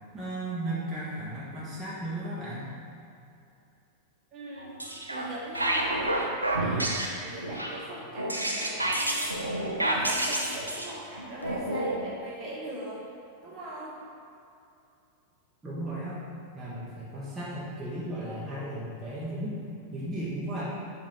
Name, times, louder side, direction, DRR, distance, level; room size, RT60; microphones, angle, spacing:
voice 1, 0.1-2.7 15.6-16.2 16.5-19.6 19.9-20.7, right 1 dB, 15° right, -9 dB, 1.3 m, -35 dB
voice 2, 4.3-4.7 5.1-6.9 7.2-9.4 9.8-13.0 13.4-13.9, right 1 dB, 30° right, -5 dB, 1.4 m, -40 dB
sound 1, 4.6-5.3 5.5-12.0, right 1 dB, 85° right, 0.6 m, -29 dB
7.2 x 2.8 x 4.9 m, 2.7 s
figure-of-eight pair, 90°, 0 cm